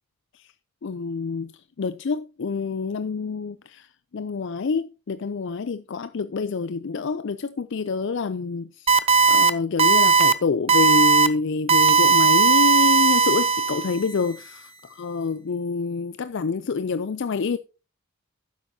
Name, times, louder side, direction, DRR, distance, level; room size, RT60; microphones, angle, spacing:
voice 1, 0.8-1.5 1.8-3.9 4.1-8.9 9.3-14.7 15.0-17.6, left 4 dB, 55° left, 0.4 m, -27 dB
sound 1, 8.9-9.5 9.8-10.3 10.7-11.3 11.7-14.0, right 5 dB, 30° right, 0.6 m, -17 dB
12.0 x 9.6 x 2.8 m
head